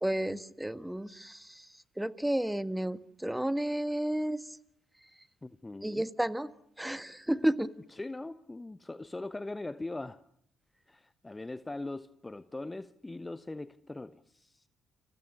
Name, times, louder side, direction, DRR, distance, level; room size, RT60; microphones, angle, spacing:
voice 1, 0.0-1.7 2.0-4.4 5.8-6.5 6.8-7.7, right 1 dB, 5° right, 13 dB, 1.6 m, -31 dB
voice 2, 5.4-6.1 8.0-10.2 10.9-14.6, left 2 dB, 20° left, 14 dB, 1.0 m, -41 dB
29.5 x 27.0 x 6.6 m, 0.72 s
figure-of-eight pair, 45°, 0 cm